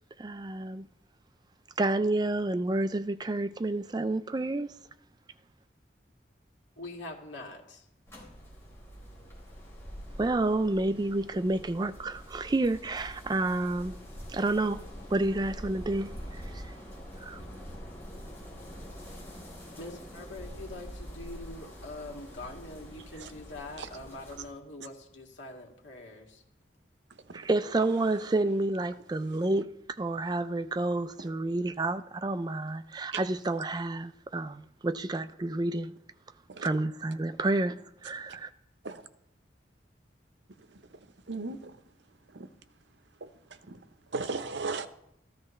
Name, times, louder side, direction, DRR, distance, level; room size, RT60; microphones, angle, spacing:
voice 1, 0.2-0.9 1.8-4.7 10.2-13.9 14.3-14.8 15.1-16.7 17.2-17.4 27.3-35.9 36.6-38.5, right 2 dB, 20° right, 0.4 m, -29 dB
voice 2, 6.8-7.9 19.8-26.4, left 2 dB, 90° left, 2.3 m, -44 dB
sound 1, 8.1-24.5, equal, 15° left, 4.0 m, -45 dB
voice 3, 41.3-41.7 42.3-42.5 43.2-43.3 43.7-43.8 44.1-44.9, right 3 dB, 75° right, 0.8 m, -35 dB
14.5 x 13.0 x 3.2 m
head